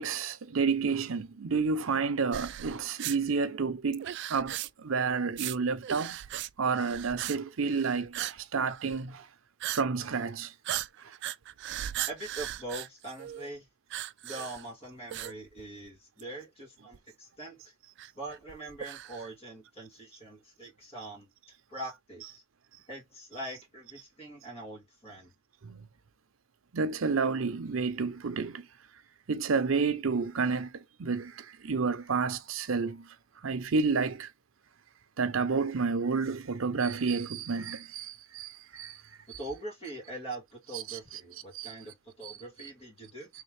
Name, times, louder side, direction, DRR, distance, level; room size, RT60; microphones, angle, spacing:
voice 1, 0.0-6.2 6.6-9.3 9.7-10.5 11.0-11.2 25.6-25.9 26.7-28.7 29.3-33.1 33.4-34.3 35.2-39.0 39.3-39.4 40.7-41.0 41.5-41.7 42.2-42.3, right 5 dB, 90° right, 0.7 m, -30 dB
sound 1, 2.3-3.2 3.9-4.9 5.3-5.6 5.8-6.5 6.8-7.4 7.6-8.4 8.7-9.0 9.6-9.8 10.1-10.3 10.6-13.5 13.9-14.7 15.1-15.9 16.2-16.3 16.9-17.0 18.0-19.3, right 13 dB, 60° right, 0.3 m, -37 dB
voice 2, 12.1-13.7 14.2-17.7 18.2-21.3 21.7-22.4 22.9-25.3 39.4-43.3, right 1 dB, 30° left, 2.0 m, -43 dB
3.7 x 3.2 x 3.3 m
head